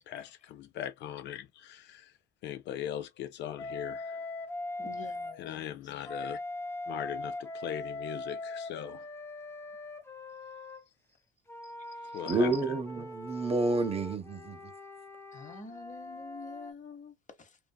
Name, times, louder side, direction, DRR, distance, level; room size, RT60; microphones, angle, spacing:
voice 1, 0.1-2.1 2.4-4.2 5.4-6.4 6.9-9.1 11.9-12.7, left 11 dB, 60° left, 0.4 m, -40 dB
Wind instrument woodwind instrument, 3.6-5.4 6.0-10.8 11.5-16.7, left 2 dB, 10° left, 0.6 m, -41 dB
voice 2, 4.8-5.8 11.6-11.7 15.3-17.6, left 4 dB, 35° left, 1.0 m, -47 dB
voice 3, 12.3-14.6, right 2 dB, 30° right, 0.6 m, -29 dB
2.6 x 2.3 x 2.2 m
supercardioid pair, 70°, 21 cm